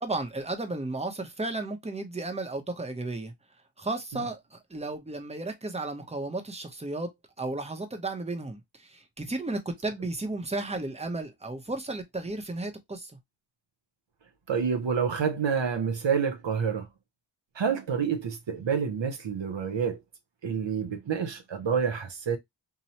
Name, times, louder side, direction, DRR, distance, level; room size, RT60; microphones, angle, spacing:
voice 1, 0.0-3.3 3.8-7.1 7.4-13.1, right 2 dB, 15° right, 0.6 m, -34 dB
voice 2, 14.5-16.9 17.6-20.0 20.4-22.4, right 6 dB, 70° right, 0.7 m, -28 dB
2.9 x 2.0 x 2.7 m
wide cardioid pair, 55°, 47 cm